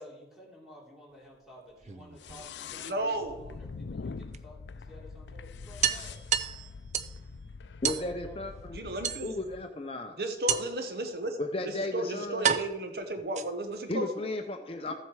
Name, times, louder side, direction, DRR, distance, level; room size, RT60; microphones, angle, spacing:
voice 1, 0.0-6.2 7.9-8.7, left 1 dB, ahead, -4 dB, 3.2 m, -53 dB
sound 1, 1.7-2.8 4.3-4.4 4.8-4.9 5.2-5.3 5.8-7.2 7.8-8.1 9.0-9.6 10.5-10.9 11.7-11.8 12.4-13.8, right 8 dB, 40° right, 0.5 m, -31 dB
sound 2, 2.2-9.7, left 5 dB, 85° left, 0.5 m, -44 dB
voice 2, 2.8-3.4 8.7-9.3 10.2-14.3, right 1 dB, 60° right, 6 dB, 1.0 m, -34 dB
voice 3, 7.8-8.8 9.2-10.2 10.6-10.7 11.4-12.5 13.9-14.9, left 2 dB, 35° left, 4 dB, 0.7 m, -34 dB
14.0 x 7.7 x 4.8 m, 1.0 s
head